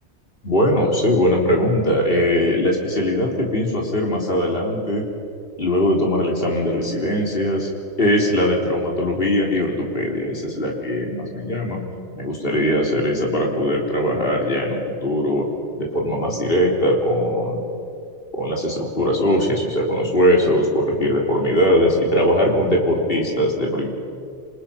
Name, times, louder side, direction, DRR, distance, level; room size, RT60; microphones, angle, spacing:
voice 1, 0.4-5.0 5.6-7.7 8.0-11.8 12.1-15.5 15.8-17.6 18.4-23.9, equal, 50° left, -1 dB, 4.0 m, -20 dB
28.0 x 27.5 x 5.8 m, 2.3 s
omnidirectional pair, 1.2 m